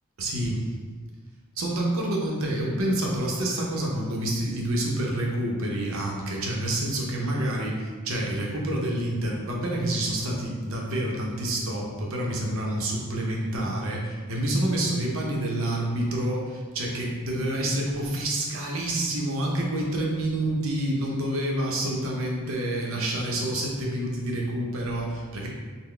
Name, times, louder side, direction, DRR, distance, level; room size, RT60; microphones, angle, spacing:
voice 1, 0.2-0.6 1.6-25.5, right 1 dB, 65° right, -1 dB, 0.6 m, -28 dB
3.7 x 2.0 x 3.2 m, 1.5 s
head